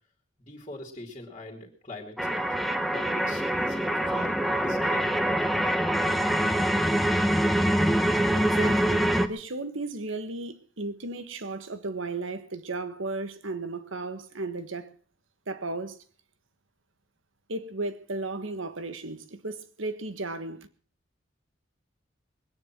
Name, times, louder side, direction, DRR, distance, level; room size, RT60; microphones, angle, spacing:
voice 1, 0.4-2.5 2.9-5.3, left 2 dB, 25° left, 2.6 m, -42 dB
sound 1, 2.2-9.3, equal, ahead, 0.7 m, -25 dB
voice 2, 8.3-14.9 15.5-16.0 17.5-20.6, right 2 dB, 80° right, 1.4 m, -35 dB
21.0 x 9.9 x 6.0 m
head